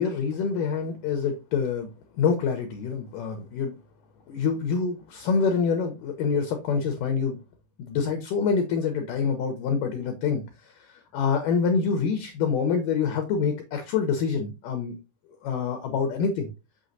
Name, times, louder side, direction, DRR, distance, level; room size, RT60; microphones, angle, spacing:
voice 1, 0.0-1.9 2.2-3.7 4.3-7.4 7.8-15.0 15.4-16.5, left 5 dB, 75° left, 6 dB, 2.0 m, -26 dB
6.3 x 6.2 x 2.6 m, 0.25 s
omnidirectional pair, 4.6 m